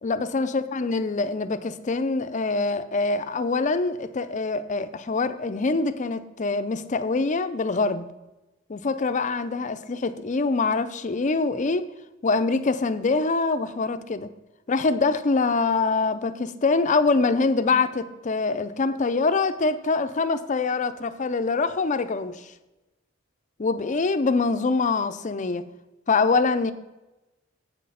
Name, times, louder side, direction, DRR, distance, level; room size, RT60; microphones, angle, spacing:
voice 1, 0.0-8.0 8.7-11.9 12.2-14.3 14.7-22.4 23.6-25.6 26.1-26.7, left 3 dB, 40° left, 11 dB, 0.5 m, -24 dB
8.3 x 6.3 x 5.6 m, 1.0 s
head